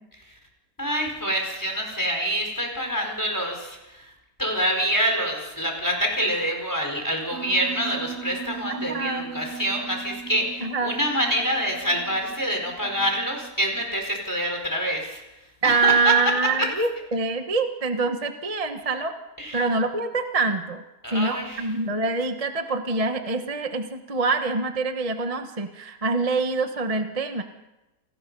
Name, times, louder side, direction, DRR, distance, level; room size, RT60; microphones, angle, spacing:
voice 1, 0.8-4.1 4.4-15.2 15.6-16.3 16.6-16.7 19.4-19.7 21.0-21.7, equal, 10° left, 2 dB, 4.7 m, -26 dB
Piano, 7.3-13.5, right 6 dB, 55° right, 2.0 m, -38 dB
voice 2, 8.7-9.3 10.6-11.0 15.6-19.2 19.5-20.8 21.1-27.4, right 3 dB, 25° right, 6 dB, 1.2 m, -25 dB
28.5 x 19.5 x 5.5 m, 0.99 s
omnidirectional pair, 1.7 m